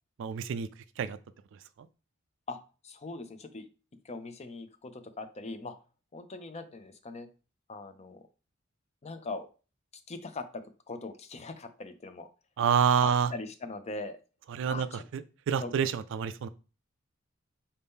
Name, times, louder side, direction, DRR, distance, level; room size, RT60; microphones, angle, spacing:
voice 1, 0.2-0.7 1.0-1.2 12.6-13.3 14.5-14.9 15.5-16.5, right 7 dB, 65° right, 13 dB, 0.3 m, -27 dB
voice 2, 2.8-3.7 4.0-5.8 6.1-7.3 7.7-8.2 9.0-9.5 9.9-12.3 13.0-14.2 14.7-15.0 15.6-15.7, left 3 dB, 30° left, 10 dB, 0.5 m, -41 dB
4.3 x 2.7 x 3.6 m, 0.33 s
head